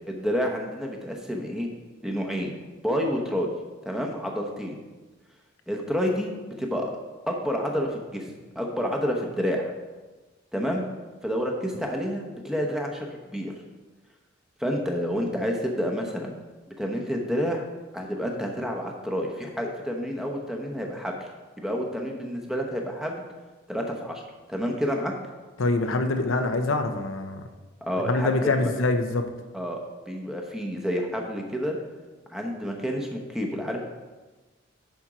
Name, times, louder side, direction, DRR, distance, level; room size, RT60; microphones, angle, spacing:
voice 1, 0.1-1.7 2.0-2.5 2.8-3.5 3.8-4.8 5.7-6.9 7.3-8.3 8.5-9.6 10.5-10.9 11.2-13.6 14.6-16.4 16.8-17.6 17.9-21.3 21.6-23.2 23.7-24.2 24.5-25.1 27.8-28.7 29.5-29.8 30.1-31.8 32.3-33.8, equal, 5° right, 1 dB, 0.9 m, -29 dB
voice 2, 25.6-27.4 28.1-29.2, left 2 dB, 85° left, 6 dB, 0.7 m, -25 dB
10.0 x 4.4 x 4.9 m, 1.2 s
head